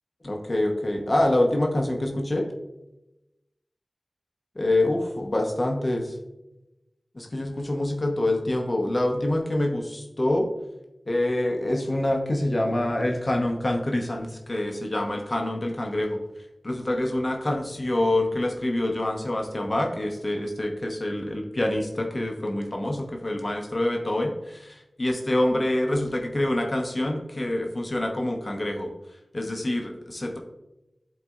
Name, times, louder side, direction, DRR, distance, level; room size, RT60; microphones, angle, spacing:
voice 1, 0.2-2.5 4.6-6.1 7.2-10.5 11.1-16.2 16.6-24.7 25.0-28.9 29.3-30.4, left 1 dB, 40° left, 1 dB, 0.9 m, -26 dB
11.0 x 4.1 x 2.4 m, 0.97 s
wide cardioid pair, 65°, 0 cm